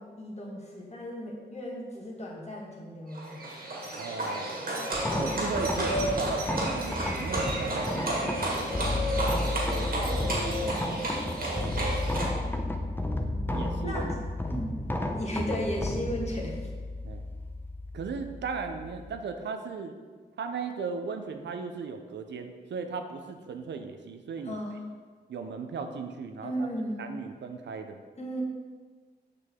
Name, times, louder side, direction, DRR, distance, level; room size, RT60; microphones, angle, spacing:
voice 1, 0.0-3.4 9.9-11.0 13.8-14.1 14.5-14.8 15.1-16.6 24.4-24.7 26.4-27.0 28.2-28.4, equal, 40° left, -2 dB, 1.7 m, -35 dB
Livestock farm animals working animals, 3.1-12.3, right 1 dB, 55° right, 1.8 m, -31 dB
voice 2, 4.0-4.6 5.2-8.9 9.7-10.7 11.5-11.8 13.5-14.1 17.0-17.3 17.9-19.9 20.4-24.6 25.3-26.7 27.0-28.0, right 5 dB, 90° right, 6 dB, 0.6 m, -37 dB
sound 1, 4.9-19.2, left 1 dB, 10° left, 0.6 m, -32 dB
6.7 x 5.8 x 3.6 m, 1.5 s
cardioid pair, 70°, 18 cm